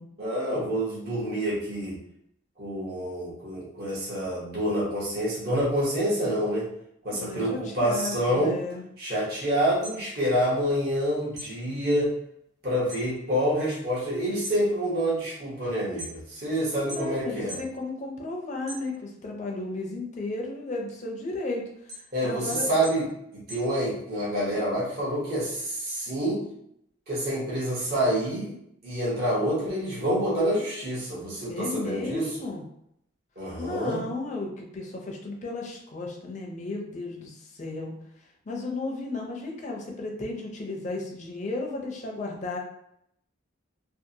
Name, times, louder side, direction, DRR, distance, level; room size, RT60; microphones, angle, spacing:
voice 1, 0.2-2.0 2.6-6.7 7.0-8.6 9.0-12.1 12.6-17.6 22.1-26.4 27.1-28.5 28.8-32.3 33.4-34.0, equal, 50° right, -7 dB, 0.8 m, -27 dB
voice 2, 7.1-8.8 16.9-21.6 22.2-22.7 24.4-24.6 31.5-32.6 33.6-37.9 38.5-42.6, left 2 dB, 35° left, 0 dB, 0.5 m, -34 dB
sound 1, 9.6-11.0 11.3-13.1 13.4-13.9 14.3-16.5 16.9-17.7 18.1-19.3 19.8-24.3, equal, 20° right, 0.7 m, -43 dB
2.6 x 2.4 x 2.7 m, 0.76 s
head